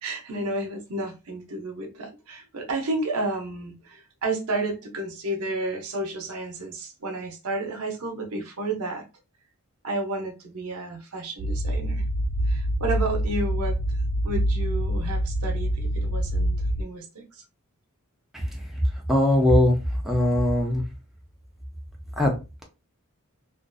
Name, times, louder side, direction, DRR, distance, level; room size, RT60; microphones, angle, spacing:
voice 1, 0.0-9.0 9.8-12.0 12.5-13.8 14.2-17.4, right 2 dB, 85° right, 0.7 m, -31 dB
sound 1, 11.4-16.8, equal, 60° right, 0.3 m, -26 dB
voice 2, 19.1-19.7 20.0-20.8 22.2-22.3, left 1 dB, ahead, 0.5 m, -20 dB
2.5 x 2.5 x 2.2 m
head